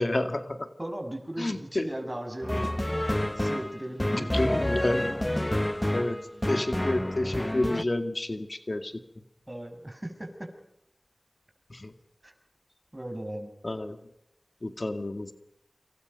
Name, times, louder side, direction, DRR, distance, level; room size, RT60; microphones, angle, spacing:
voice 1, 0.0-0.7 1.4-1.9 4.1-5.1 5.9-6.2 6.5-8.9 11.7-11.9 13.6-14.0 14.6-15.3, left 1 dB, 55° left, 8 dB, 2.1 m, -29 dB
voice 2, 0.8-4.5 9.5-10.5 12.2-12.3 12.9-13.5, right 1 dB, 30° right, 5 dB, 6.0 m, -38 dB
sound 1, 2.4-7.8, left 1 dB, 25° left, 0.9 m, -29 dB
29.0 x 26.5 x 5.3 m, 0.78 s
wide cardioid pair, 40°, 0 cm